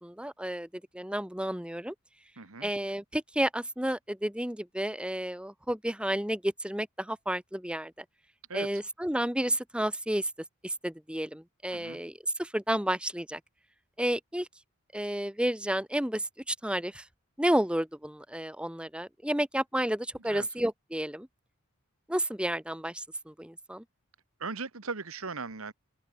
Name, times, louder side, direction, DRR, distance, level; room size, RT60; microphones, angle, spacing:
voice 1, 0.0-0.7 0.9-1.9 2.6-8.0 8.5-10.3 10.6-13.4 14.0-14.5 14.9-17.1 17.4-21.3 22.1-23.8, right 1 dB, 5° right, 1.3 m, -31 dB
voice 2, 2.4-2.7 8.5-8.7 11.7-12.0 20.3-20.5 24.4-25.7, right 4 dB, 75° right, 1.6 m, -38 dB
open air
head